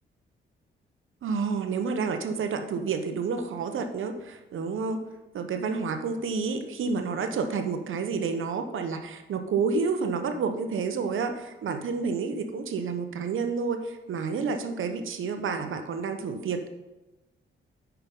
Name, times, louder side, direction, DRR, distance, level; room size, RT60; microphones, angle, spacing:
voice 1, 1.2-5.0 5.3-16.7, right 5 dB, 70° right, 7 dB, 0.9 m, -29 dB
8.7 x 5.8 x 5.4 m, 1.0 s
cardioid pair, 90°, 21 cm